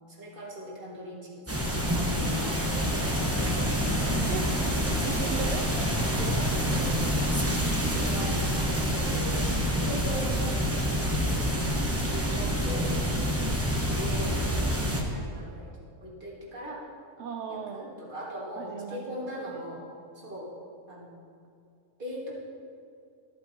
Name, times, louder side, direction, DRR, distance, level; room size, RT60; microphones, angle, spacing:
voice 1, 0.1-2.4 3.0-3.3 6.1-6.7 8.0-9.4 9.8-11.2 11.6-12.9 13.5-14.7 15.0-15.7 16.0-16.8 17.5-19.8 20.1-20.5 20.9-21.1 22.0-22.3, equal, 40° right, -5 dB, 2.0 m, -40 dB
sound 1, 1.5-15.0, equal, 15° right, 0.8 m, -27 dB
sound 2, 2.3-8.4, left 2 dB, 80° left, 1.6 m, -46 dB
voice 2, 5.0-5.7 6.6-7.1 7.8-8.5 17.2-18.0 18.6-19.2, right 6 dB, 70° right, 4 dB, 0.9 m, -38 dB
13.5 x 8.0 x 2.8 m, 2.3 s
omnidirectional pair, 1.3 m